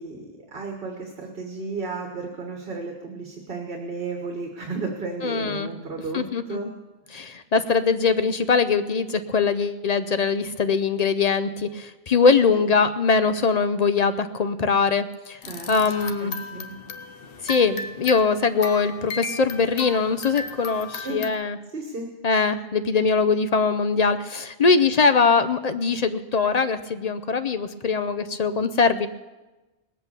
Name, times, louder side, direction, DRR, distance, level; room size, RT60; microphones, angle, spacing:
voice 1, 0.0-6.7 15.5-15.7 16.2-16.7 21.0-21.2 21.7-22.1, right 3 dB, 60° right, 2 dB, 1.6 m, -33 dB
voice 2, 5.2-5.7 6.1-6.6 7.1-15.4 15.7-16.3 17.4-21.6 22.2-29.1, left 5 dB, 50° left, 10 dB, 0.6 m, -22 dB
sound 1, 15.4-21.3, left 4 dB, 65° left, 1.0 m, -36 dB
19.0 x 8.2 x 6.8 m, 1.1 s
omnidirectional pair, 1.0 m